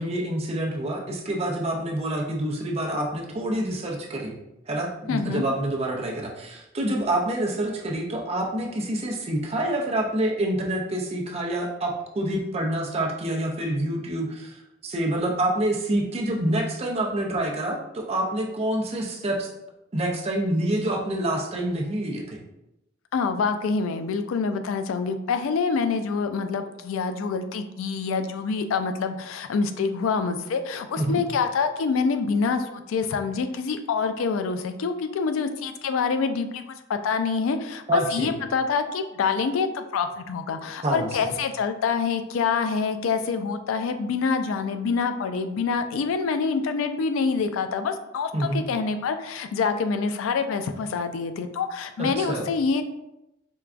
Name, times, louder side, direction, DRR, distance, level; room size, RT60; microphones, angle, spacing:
voice 1, 0.0-4.4 4.7-19.5 19.9-22.4 31.0-31.2 37.9-38.3 40.8-41.4 48.3-48.6 52.0-52.5, right 1 dB, 30° right, 0 dB, 0.5 m, -27 dB
voice 2, 5.1-5.4 23.1-52.8, left 5 dB, 85° left, 8 dB, 0.3 m, -26 dB
4.5 x 2.2 x 2.4 m, 0.90 s
head